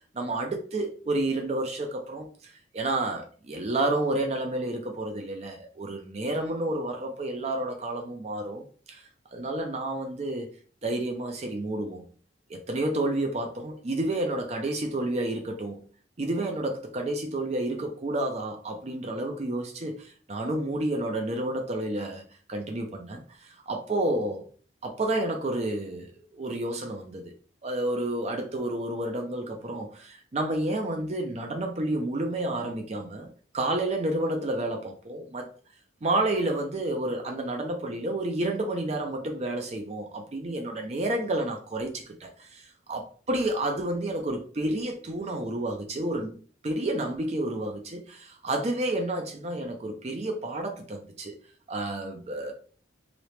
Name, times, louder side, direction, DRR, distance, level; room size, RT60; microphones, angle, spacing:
voice 1, 0.1-8.6 8.9-10.5 10.8-12.0 12.5-15.8 16.2-22.2 22.5-24.5 24.8-27.3 27.6-33.3 33.5-35.5 36.0-46.4 46.6-51.3 51.7-52.5, right 1 dB, 35° right, 0.5 m, -30 dB
3.0 x 2.9 x 3.2 m
head